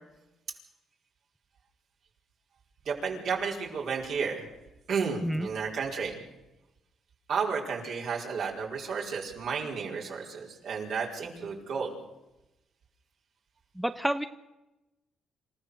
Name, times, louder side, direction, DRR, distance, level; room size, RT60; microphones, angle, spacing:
voice 1, 2.8-4.5 4.9-6.2 7.3-11.9, right 5 dB, 65° right, -1 dB, 5.0 m, -32 dB
voice 2, 13.8-14.3, right 1 dB, 5° right, 9 dB, 0.9 m, -29 dB
27.5 x 15.0 x 6.7 m, 0.97 s
cardioid pair, 90°, 0 cm